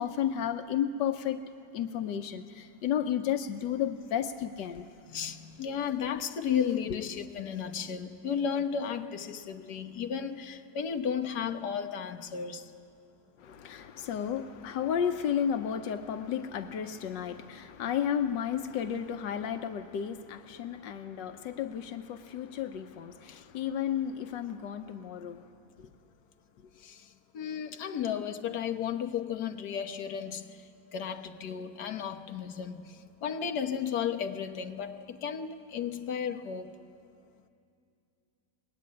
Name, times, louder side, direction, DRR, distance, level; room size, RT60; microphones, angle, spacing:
voice 1, 0.0-1.4 1.7-5.3 13.4-25.4, left 9 dB, 90° left, 7 dB, 1.5 m, -33 dB
voice 2, 5.1-12.7 26.8-27.1 27.3-30.7 30.9-36.7, left 7 dB, 65° left, 5 dB, 1.7 m, -34 dB
25.0 x 21.0 x 9.7 m, 2.5 s
omnidirectional pair, 1.9 m